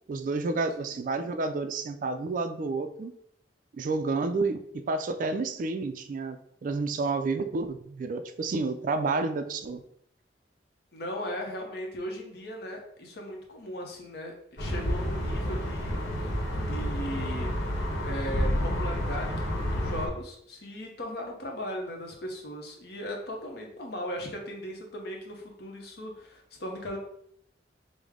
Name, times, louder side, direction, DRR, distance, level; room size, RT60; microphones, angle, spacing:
voice 1, 0.1-3.1 3.7-9.8, right 3 dB, 50° right, 9 dB, 0.3 m, -30 dB
voice 2, 10.9-17.6 18.0-27.0, equal, 65° left, 1 dB, 0.9 m, -38 dB
sound 1, 14.6-20.1, equal, 90° left, 1.0 m, -30 dB
5.1 x 2.1 x 3.6 m, 0.71 s
head